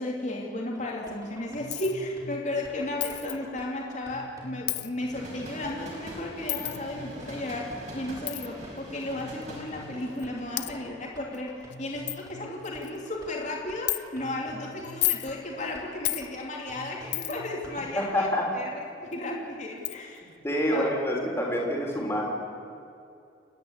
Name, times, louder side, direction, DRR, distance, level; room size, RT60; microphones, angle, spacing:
voice 1, 0.0-18.3 18.5-18.7 19.0-20.3 20.7-20.9 21.2-21.3, left 1 dB, 40° left, -1 dB, 2.8 m, -34 dB
sound 1, 0.7-18.3, equal, 20° right, 4.8 m, -48 dB
Coin (dropping), 1.7-2.0 3.0-3.4 4.7-4.9 6.5-6.8 8.3-8.5 9.4-9.5 10.2-10.3 10.6-10.7 11.3-11.4 11.7-11.8 12.1-12.2 12.6-13.0 13.9-14.0 14.8-15.3 16.0-16.3 17.1-17.5 19.1-19.2 19.8-20.0, left 17 dB, 65° left, 0.7 m, -30 dB
sound 2, 5.0-10.8, right 1 dB, 40° right, 5.7 m, -43 dB
voice 2, 18.0-18.6 20.4-22.2, equal, 15° left, -2 dB, 3.6 m, -27 dB
29.5 x 10.5 x 10.0 m, 2.6 s
head